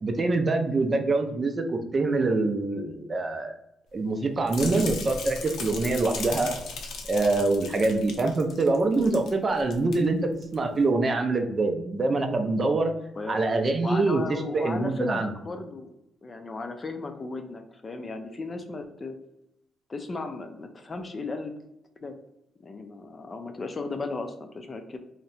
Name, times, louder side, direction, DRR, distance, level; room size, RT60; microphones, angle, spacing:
voice 1, 0.0-3.5 3.9-6.5 7.1-12.9 13.3-15.3, right 3 dB, 35° right, 5 dB, 0.4 m, -25 dB
sound 1, 4.5-9.3 9.6-9.9 10.4-10.5, left 3 dB, 75° left, 0.6 m, -37 dB
voice 2, 13.8-15.9 16.2-19.2 19.9-21.5 22.0-22.2 22.6-25.0, left 3 dB, 30° left, 6 dB, 0.4 m, -35 dB
2.7 x 2.1 x 4.0 m, 0.85 s
cardioid pair, 90°, 0 cm